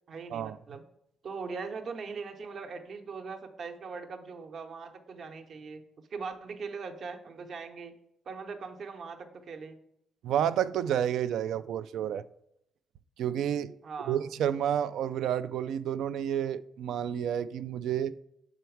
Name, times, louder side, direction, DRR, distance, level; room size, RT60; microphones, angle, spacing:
voice 1, 0.1-0.8 1.2-5.8 6.1-7.9 8.2-9.8 13.8-14.2, right 5 dB, 55° right, 0.8 m, -40 dB
voice 2, 10.2-12.2 13.2-13.7 14.1-18.1, right 9 dB, 80° right, 0.3 m, -30 dB
7.1 x 4.5 x 4.6 m
cardioid pair, 90°, 0 cm